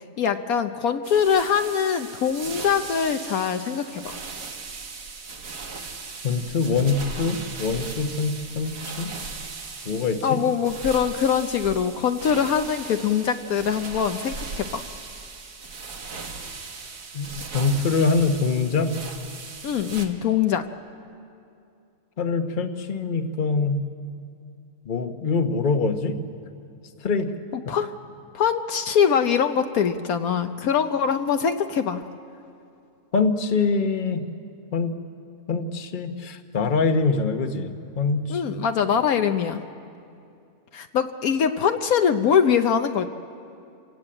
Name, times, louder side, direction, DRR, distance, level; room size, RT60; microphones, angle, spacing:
voice 1, 0.2-4.0 10.2-14.8 19.6-20.7 27.5-27.9 28.3-32.0 38.3-39.6 40.7-43.1, left 7 dB, 70° left, 8 dB, 1.2 m, -23 dB
sound 1, 1.0-20.1, right 4 dB, 90° right, 2.2 m, -38 dB
voice 2, 6.2-9.1 9.8-10.4 17.1-17.3 17.5-18.9 22.2-23.8 24.9-26.2 27.0-27.3 33.1-34.2 34.7-34.9 35.5-38.4, left 4 dB, 35° left, 7 dB, 1.1 m, -24 dB
27.5 x 17.0 x 8.7 m, 2.5 s
omnidirectional pair, 1.6 m